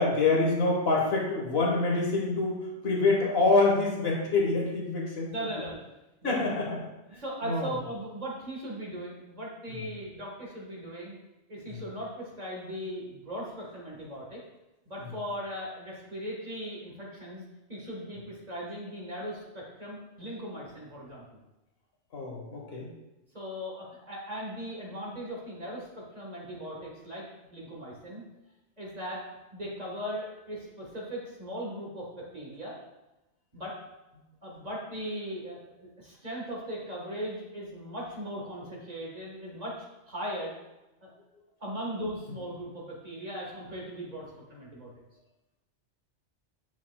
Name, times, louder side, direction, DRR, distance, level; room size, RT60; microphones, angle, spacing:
voice 1, 0.0-5.3 6.2-6.8 7.1-7.7 11.7-11.8 22.1-22.9, left 3 dB, 60° left, -1 dB, 1.5 m, -26 dB
voice 2, 5.3-5.8 6.2-6.4 7.2-11.1 11.5-14.4 14.8-17.4 17.7-21.4 23.3-28.2 28.8-29.2 29.5-32.8 33.5-33.8 34.1-40.5 41.0-41.1 41.6-44.9, equal, 35° right, -3 dB, 1.5 m, -38 dB
8.3 x 6.1 x 2.3 m, 0.99 s
omnidirectional pair, 1.2 m